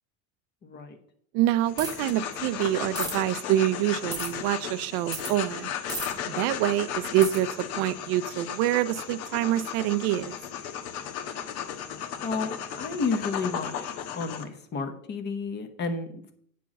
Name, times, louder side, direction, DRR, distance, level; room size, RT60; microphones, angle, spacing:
voice 1, 0.6-1.0 12.2-16.3, left 4 dB, 25° left, 8 dB, 0.9 m, -32 dB
voice 2, 1.3-5.7 6.3-7.5 7.8-10.3, right 13 dB, 40° right, 13 dB, 0.4 m, -26 dB
sound 1, 1.6-14.4, left 9 dB, 70° left, 1.4 m, -35 dB
sound 2, 1.8-2.1 3.0-3.1 4.1-4.3 5.1-5.3 5.9-6.1 7.2-7.4, right 2 dB, 10° right, 1.6 m, -33 dB
9.0 x 4.6 x 7.3 m, 0.64 s
cardioid pair, 165°, 43 cm